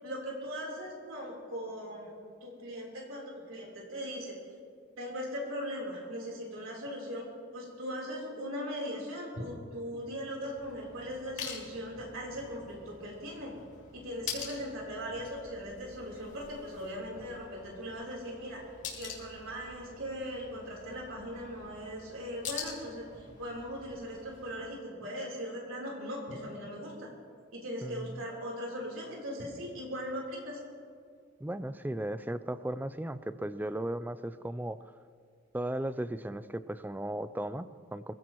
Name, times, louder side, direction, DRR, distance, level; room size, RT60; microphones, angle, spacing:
voice 1, 0.0-2.1 2.4-4.4 5.0-7.2 7.5-13.5 13.9-18.6 19.0-27.1 27.5-30.6, equal, 80° right, -3 dB, 3.8 m, -39 dB
sound 1, 10.4-24.7, left 6 dB, 60° left, 3.0 m, -46 dB
voice 2, 27.8-28.2 31.4-34.8 35.5-38.1, right 1 dB, 10° right, 13 dB, 0.3 m, -36 dB
24.5 x 15.5 x 3.1 m, 2.2 s
head